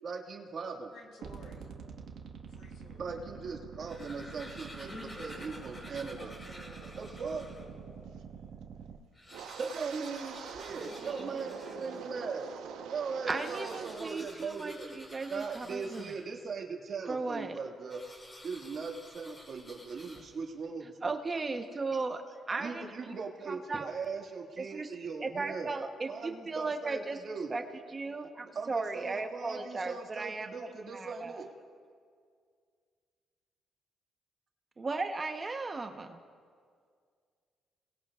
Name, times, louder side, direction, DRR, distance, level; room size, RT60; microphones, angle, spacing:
voice 1, 0.0-0.9 3.0-4.9 5.2-6.3 7.0-7.5 9.6-12.5 12.9-14.9 15.3-18.1 18.4-21.2 22.6-25.7 26.1-27.6 28.5-31.5, right 4 dB, 55° right, 2 dB, 1.9 m, -39 dB
voice 2, 0.9-1.8 2.5-3.2 3.5-3.6 4.9-8.1 10.7-12.0 12.4-12.5, left 1 dB, 70° left, -1 dB, 5.6 m, -51 dB
sound 1, 1.2-9.0, right 6 dB, 75° right, 1.6 m, -47 dB
sound 2, 3.7-7.8 8.3-8.4 8.6-8.7 9.0-12.2 13.1-16.6 17.9-20.6, left 1 dB, 25° left, 4.4 m, -51 dB
Wind, 9.3-14.1 14.4-14.9 15.3-15.6, right 8 dB, 90° right, 0.9 m, -44 dB
voice 3, 13.3-16.0 17.1-17.6 21.0-22.9 23.5-23.9 24.6-24.9 25.2-27.2 27.5-27.6 27.9-31.4 34.8-36.2, right 3 dB, 30° right, 6 dB, 1.0 m, -36 dB
29.0 x 20.0 x 2.4 m, 2.1 s
cardioid pair, 90°, 0 cm